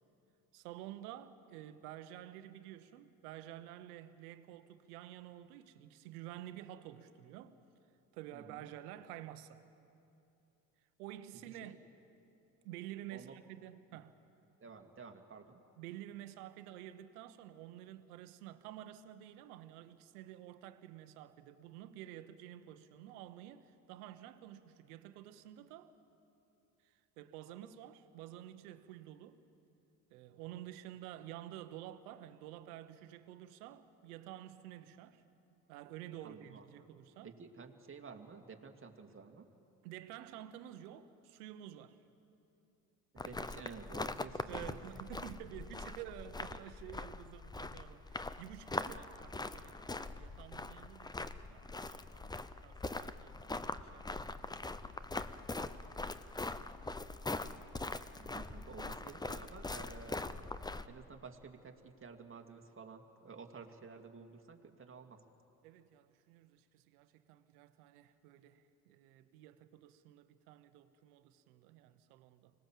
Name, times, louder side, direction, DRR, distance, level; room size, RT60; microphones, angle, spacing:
voice 1, 0.5-7.6 8.1-9.6 11.0-11.8 12.6-14.2 15.8-25.9 26.8-29.4 30.1-35.2 35.7-37.3 39.8-42.0 44.5-52.4 52.6-53.5 53.8-54.3 54.6-55.0 55.3-55.7 65.6-72.5, right 12 dB, 90° right, 1.1 m, -50 dB
voice 2, 8.3-8.7 11.3-11.8 13.1-13.4 13.9-14.0 14.6-15.7 36.2-36.9 37.2-39.5 43.1-44.8 48.8-48.9 49.3-49.5 58.2-60.5 60.8-65.2, right 5 dB, 30° right, 2.2 m, -52 dB
sound 1, 43.2-60.9, left 2 dB, 10° left, 0.7 m, -42 dB
25.0 x 19.0 x 7.4 m
supercardioid pair, 80°, 44 cm